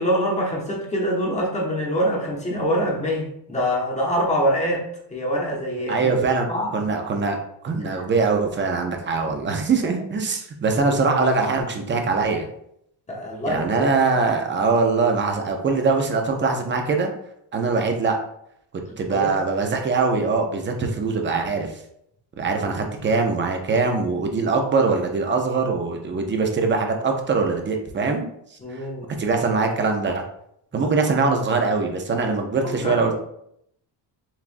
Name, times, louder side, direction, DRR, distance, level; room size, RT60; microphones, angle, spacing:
voice 1, 0.0-6.1 6.5-6.8 7.8-8.0 13.1-13.9 19.1-19.3 28.6-29.1 30.8-30.9 32.6-33.1, equal, 15° left, -2 dB, 0.9 m, -25 dB
voice 2, 5.9-6.5 6.7-12.5 13.5-17.1 17.5-18.2 19.0-21.8 22.4-28.3 28.7-28.8 29.2-30.2 30.7-33.1, right 4 dB, 25° right, 3 dB, 0.5 m, -22 dB
7.1 x 2.4 x 2.5 m, 0.73 s
cardioid pair, 175°, 43 cm